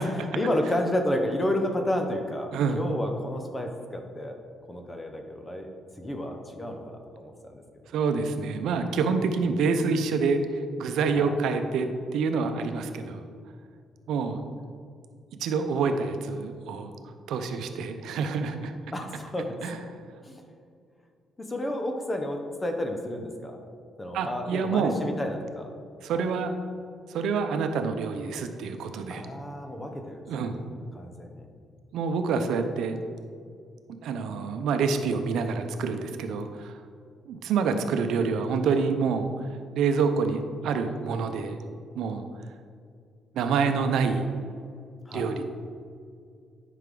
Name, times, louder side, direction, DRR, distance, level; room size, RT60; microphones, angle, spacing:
voice 1, 0.0-4.4 4.7-5.7 6.0-7.6 11.1-11.4 18.9-19.5 20.2-20.4 21.4-23.6 24.0-25.7 26.1-26.3 29.1-30.5 30.9-31.5 45.1-45.3, left 1 dB, 20° left, 4 dB, 1.0 m, -31 dB
voice 2, 7.9-13.2 14.1-14.4 15.4-16.9 17.3-18.7 19.6-19.8 24.1-25.0 26.0-26.5 27.1-29.3 30.3-30.6 31.9-33.0 34.0-36.8 37.3-39.5 39.7-41.6 41.9-42.3 43.3-44.3 45.1-45.4, right 5 dB, 80° right, 7 dB, 0.6 m, -27 dB
9.1 x 5.8 x 3.9 m, 2.3 s
cardioid pair, 90°, 0 cm